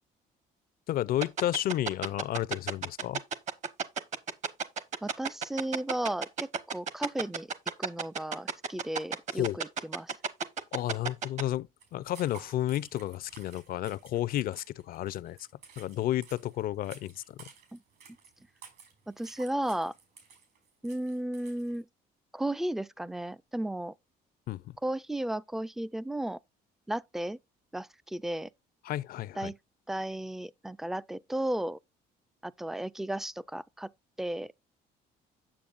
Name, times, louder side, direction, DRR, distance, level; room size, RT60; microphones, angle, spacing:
voice 1, 0.9-3.2 9.3-9.6 10.7-15.5 15.8-17.5 24.5-24.8 28.8-29.5, left 13 dB, 60° left, 0.5 m, -32 dB
sound 1, 1.2-11.4, right 6 dB, 45° right, 1.0 m, -31 dB
voice 2, 5.0-7.5 7.8-10.2 17.7-17.8 19.1-19.9 20.8-21.9 22.3-23.9 24.8-26.4 26.9-27.4 27.7-28.5 29.4-29.6 29.9-31.8 32.4-33.9 34.2-34.5, right 1 dB, ahead, 0.3 m, -34 dB
Walking on a wet surface, 11.8-21.8, right 7 dB, 75° right, 5.2 m, -54 dB
8.6 x 7.1 x 2.4 m
cardioid pair, 110°, 17 cm